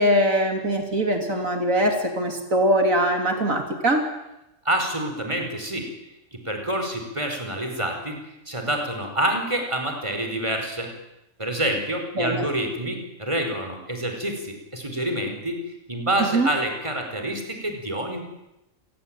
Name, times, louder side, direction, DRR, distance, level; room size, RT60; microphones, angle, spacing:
voice 1, 0.0-4.0 12.2-12.5 16.2-16.5, right 1 dB, 75° right, 4 dB, 3.6 m, -22 dB
voice 2, 4.7-5.9 6.3-8.2 8.5-10.9 11.4-15.6 15.9-18.2, right 1 dB, 20° right, 4 dB, 5.2 m, -27 dB
28.5 x 22.0 x 9.2 m, 0.91 s
omnidirectional pair, 1.4 m